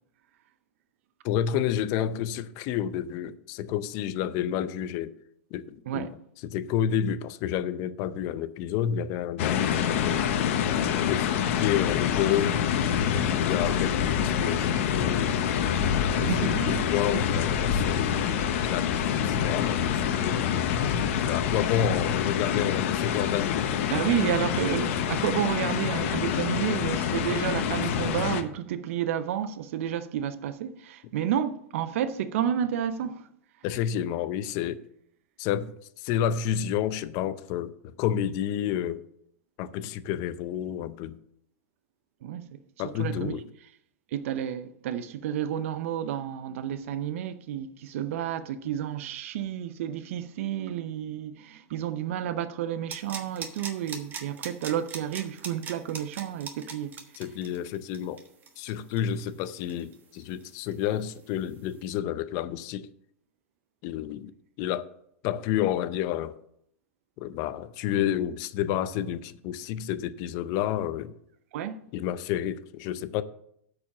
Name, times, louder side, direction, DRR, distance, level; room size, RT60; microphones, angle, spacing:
voice 1, 1.2-5.1 5.5-6.1 6.4-10.3 10.7-12.6 13.1-15.5 15.9-18.1 18.5-20.6 21.3-23.7 33.6-34.8 35.4-39.0 39.6-41.1 42.8-43.4 57.2-58.2 58.6-62.9 63.8-64.3 64.6-64.9 65.2-66.4 67.2-71.1 71.9-73.2, left 10 dB, 45° left, 0.6 m, -30 dB
sound 1, 9.4-28.4, left 8 dB, 60° left, 1.0 m, -26 dB
voice 2, 16.2-16.8 17.1-17.3 23.9-33.3 42.2-42.6 42.8-43.3 44.1-56.9 71.5-71.8, right 10 dB, 65° right, 0.7 m, -31 dB
sound 2, 52.9-60.4 60.7-60.8, right 5 dB, 25° right, 1.2 m, -40 dB
8.4 x 4.9 x 7.0 m
hypercardioid pair, 125°, 8 cm